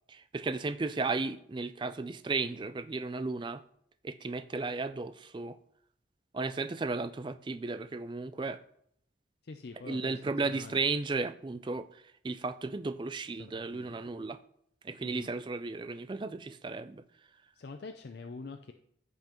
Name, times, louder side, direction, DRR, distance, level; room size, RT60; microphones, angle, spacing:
voice 1, 0.1-3.6 4.0-5.6 6.3-8.6 9.8-14.4 14.8-17.0, right 3 dB, 25° right, 12 dB, 0.3 m, -34 dB
voice 2, 9.4-10.8 13.4-14.0 15.0-15.3 17.5-18.7, left 4 dB, 55° left, 6 dB, 0.4 m, -45 dB
14.5 x 5.6 x 3.0 m, 0.71 s
head